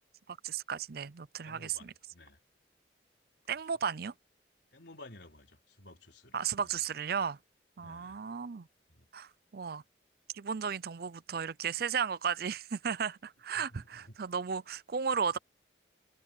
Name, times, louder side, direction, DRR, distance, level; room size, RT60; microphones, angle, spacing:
voice 1, 0.3-1.9 3.5-4.1 6.3-7.4 7.8-8.7 9.1-9.8 10.3-15.4, right 6 dB, 55° right, 0.5 m, -34 dB
voice 2, 1.4-2.4 3.5-3.6 4.7-6.8 7.8-8.2 8.9-9.1 13.5-14.2, left 2 dB, 70° left, 4.5 m, -54 dB
head